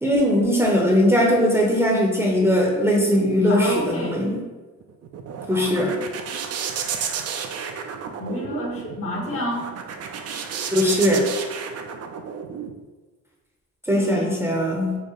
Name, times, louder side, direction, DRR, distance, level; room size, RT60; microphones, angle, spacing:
voice 1, 0.0-4.4 5.5-6.0 10.7-11.3 13.9-15.0, equal, 10° right, -2 dB, 0.6 m, -20 dB
voice 2, 3.4-4.2 8.2-9.7 13.9-14.3, left 1 dB, 45° left, 0 dB, 0.9 m, -29 dB
sound 1, 4.8-12.7, right 7 dB, 55° right, 0.4 m, -32 dB
4.7 x 2.1 x 3.0 m, 1.2 s
cardioid pair, 90°, 30 cm